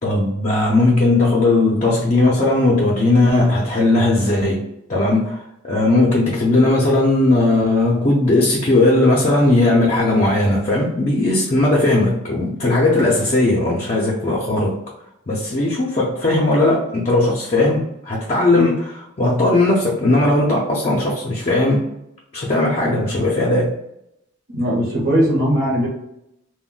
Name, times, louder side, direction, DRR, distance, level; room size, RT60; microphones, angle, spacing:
voice 1, 0.0-4.6 4.9-14.8 15.3-21.9 22.3-23.7, left 2 dB, 30° left, -3 dB, 0.5 m, -17 dB
voice 2, 24.5-25.9, equal, 50° right, -5 dB, 0.8 m, -19 dB
2.2 x 2.0 x 3.7 m, 0.81 s
head